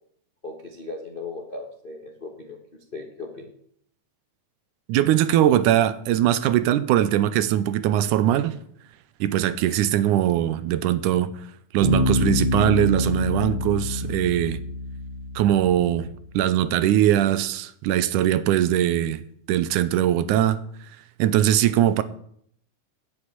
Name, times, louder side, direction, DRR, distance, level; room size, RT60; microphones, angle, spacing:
voice 1, 0.4-2.6 2.9-3.5, left 3 dB, 70° left, 0.5 m, -37 dB
voice 2, 4.9-8.6 9.2-11.3 11.7-14.6 15.4-16.1 16.3-19.2 19.5-20.6 21.2-22.0, right 11 dB, 85° right, 2.2 m, -21 dB
Bass guitar, 11.8-15.5, left 2 dB, 40° right, 3.4 m, -26 dB
8.7 x 8.1 x 8.9 m
omnidirectional pair, 3.6 m